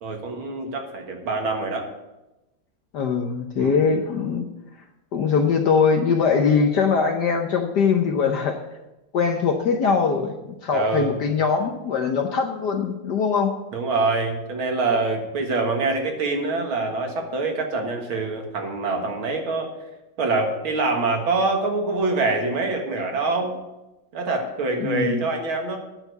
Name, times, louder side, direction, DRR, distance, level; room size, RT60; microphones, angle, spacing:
voice 1, 0.0-1.9 3.6-3.9 10.7-11.2 13.7-19.7 20.2-23.5 24.1-25.8, right 3 dB, 75° right, 2 dB, 2.5 m, -25 dB
voice 2, 2.9-4.5 5.1-8.6 9.1-13.5 24.8-25.2, left 5 dB, 60° left, 3 dB, 1.3 m, -22 dB
9.8 x 6.8 x 8.0 m, 1.0 s
omnidirectional pair, 2.3 m